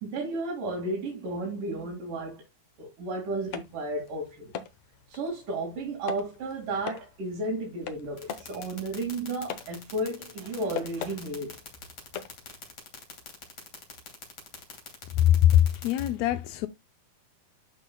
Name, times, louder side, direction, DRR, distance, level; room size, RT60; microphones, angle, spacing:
voice 1, 0.0-2.4 2.8-4.5 5.1-11.6, right 2 dB, 75° right, 3.8 m, -33 dB
sound 1, 3.4-12.8, left 8 dB, 65° left, 1.9 m, -43 dB
sound 2, 8.2-16.1, left 6 dB, 45° left, 3.7 m, -43 dB
voice 2, 15.5-16.7, left 11 dB, 80° left, 1.6 m, -24 dB
12.0 x 5.6 x 2.2 m
omnidirectional pair, 3.8 m